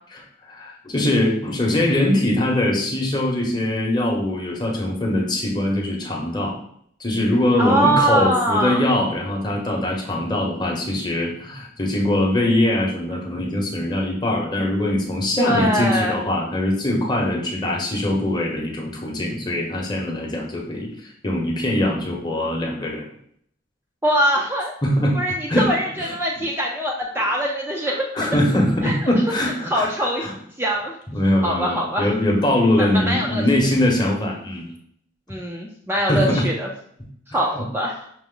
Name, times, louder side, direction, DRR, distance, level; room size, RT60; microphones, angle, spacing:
voice 1, 0.1-6.5 7.0-23.0 24.8-25.2 25.5-25.7 26.0-26.1 27.2-27.3 27.9-30.3 31.1-34.7 36.1-36.5 37.5-37.7, left 1 dB, 20° left, -1 dB, 0.9 m, -22 dB
voice 2, 7.6-8.8 15.4-16.2 24.0-24.7 25.1-27.9 28.8-29.0 29.6-30.3 30.6-30.9 31.4-32.1 32.8-33.4 35.3-36.7 37.3-37.9, equal, 10° right, -3 dB, 0.4 m, -22 dB
5.9 x 2.0 x 3.7 m, 0.66 s
head